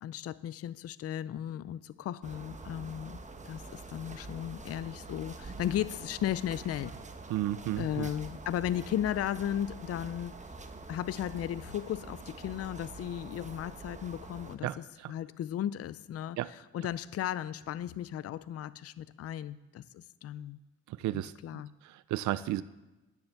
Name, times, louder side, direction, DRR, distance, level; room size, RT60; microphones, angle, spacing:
voice 1, 0.0-3.2 3.4-6.9 7.8-10.4 10.9-20.6 21.1-21.7, left 11 dB, 50° left, 17 dB, 0.5 m, -35 dB
sound 1, 2.2-14.6, right 3 dB, 25° right, 1.2 m, -46 dB
voice 2, 7.3-8.1 14.6-15.1 16.4-16.5 20.9-21.3 21.8-22.6, right 14 dB, 70° right, 15 dB, 0.5 m, -33 dB
10.5 x 9.8 x 7.0 m, 1.1 s
cardioid pair, 90°, 30 cm